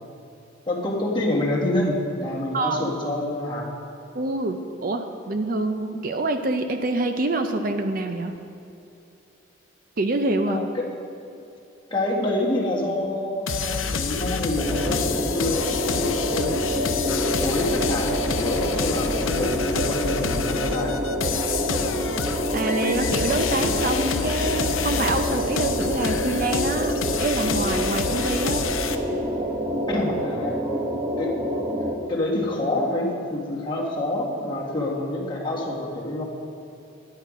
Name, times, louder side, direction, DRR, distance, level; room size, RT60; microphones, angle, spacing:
voice 1, 0.7-3.7 10.5-10.9 11.9-16.6 17.0-21.0 29.9-30.6 31.2-31.3 32.1-36.2, left 1 dB, 25° left, -3 dB, 1.6 m, -27 dB
voice 2, 4.1-8.3 10.0-10.6 22.5-28.6, right 2 dB, 45° right, 6 dB, 0.5 m, -26 dB
sound 1, 13.5-28.9, left 5 dB, 85° left, 0.7 m, -28 dB
sound 2, 14.6-31.9, equal, 25° right, 0.9 m, -27 dB
10.5 x 8.9 x 5.0 m, 2.7 s
head